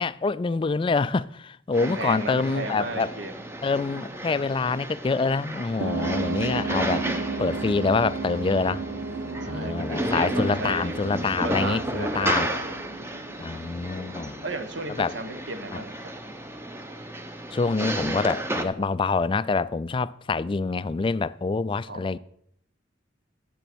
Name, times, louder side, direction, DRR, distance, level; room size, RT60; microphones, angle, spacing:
voice 1, 0.0-3.1 3.6-7.1 7.4-8.8 9.5-12.5 13.4-14.5 15.0-15.1 15.7-15.8 17.5-22.2, left 4 dB, 25° left, 0.3 m, -26 dB
sound 1, 1.7-18.6, right 1 dB, 15° right, 0.8 m, -33 dB
voice 2, 1.8-3.5 9.4-11.0 11.4-12.8 14.4-16.0 21.9-22.0, right 2 dB, 65° right, 1.2 m, -34 dB
sound 2, 5.8-13.9, right 4 dB, 80° right, 0.7 m, -34 dB
10.0 x 8.2 x 6.1 m
head